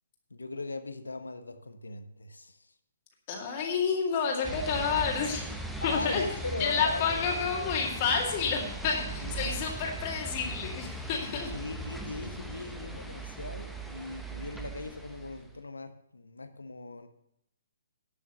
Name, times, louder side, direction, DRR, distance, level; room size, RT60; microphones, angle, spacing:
voice 1, 0.3-2.6 5.8-7.9 9.2-9.5 11.5-17.1, left 3 dB, 80° left, 9 dB, 1.1 m, -39 dB
voice 2, 3.3-5.5 5.8-6.2 6.6-11.5, left 6 dB, 35° left, 0 dB, 2.2 m, -29 dB
sound 1, 4.4-15.6, right 2 dB, ahead, 0.9 m, -39 dB
11.0 x 6.2 x 6.8 m, 0.78 s
figure-of-eight pair, 130°, 0 cm